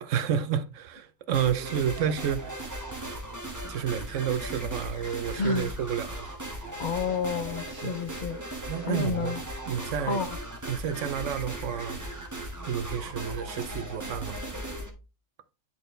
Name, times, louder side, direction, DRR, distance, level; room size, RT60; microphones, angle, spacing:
voice 1, 0.0-2.6 3.6-6.3 7.8-7.9 8.7-9.4 9.7-10.2 10.7-12.0 12.7-14.4, right 8 dB, 70° right, 1.0 m, -30 dB
sound 1, 1.3-14.9, right 1 dB, 15° right, 1.3 m, -37 dB
voice 2, 5.4-5.7 6.8-8.4 8.8-9.4 10.1-10.4, left 5 dB, 70° left, 0.4 m, -30 dB
9.9 x 4.4 x 3.2 m
omnidirectional pair, 1.4 m